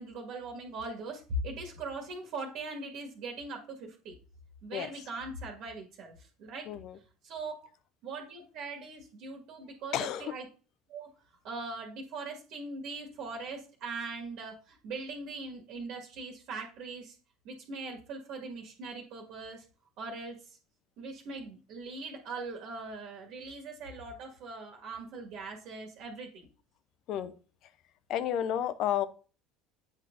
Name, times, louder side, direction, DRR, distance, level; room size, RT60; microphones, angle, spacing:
voice 1, 0.0-4.1 4.6-6.7 7.2-7.7 8.0-10.4 10.9-11.1 11.4-17.1 17.4-19.6 20.0-20.6 21.0-26.4, right 3 dB, 60° right, 2 dB, 1.8 m, -40 dB
voice 2, 6.7-7.0 9.9-10.3 27.1-27.3 28.1-29.1, left 10 dB, 55° left, 13 dB, 0.7 m, -31 dB
8.8 x 5.2 x 2.6 m, 0.39 s
hypercardioid pair, 70°, 0 cm